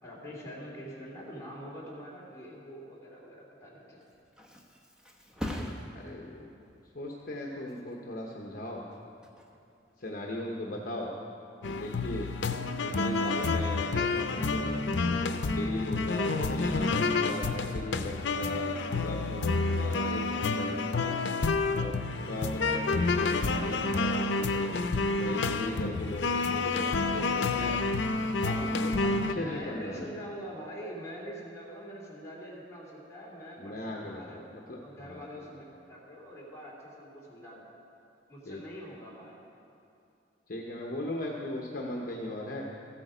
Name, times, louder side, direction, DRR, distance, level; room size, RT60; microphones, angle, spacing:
voice 1, 0.0-4.0 29.3-34.4 34.8-37.6 38.3-39.4, equal, 15° left, -6 dB, 2.9 m, -44 dB
Thump thud, 3.8-11.3 11.7-12.1, left 1 dB, 5° right, 0.9 m, -44 dB
voice 2, 5.9-6.5 6.9-8.8 10.0-11.1 11.7-12.3 12.8-14.8 15.5-21.1 21.7-24.8 25.2-27.8 28.4-30.1 33.6-35.2 38.5-38.6 40.5-42.7, left 1 dB, 50° left, -1 dB, 1.0 m, -38 dB
sound 1, 11.6-29.3, left 3 dB, 75° left, 0.6 m, -29 dB
14.5 x 8.7 x 5.0 m, 2.7 s
head